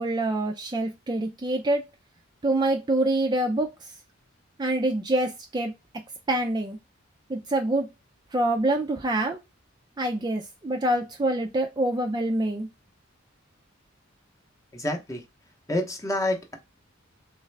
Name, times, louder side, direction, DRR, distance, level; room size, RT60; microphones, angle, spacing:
voice 1, 0.0-1.8 2.4-3.9 4.6-5.7 6.3-6.8 7.3-7.9 8.3-9.4 10.0-12.7, right 1 dB, 20° right, 3 dB, 0.4 m, -26 dB
voice 2, 14.7-15.2 15.7-16.6, left 1 dB, 15° left, 4 dB, 0.7 m, -28 dB
3.6 x 3.1 x 3.2 m, 0.23 s
head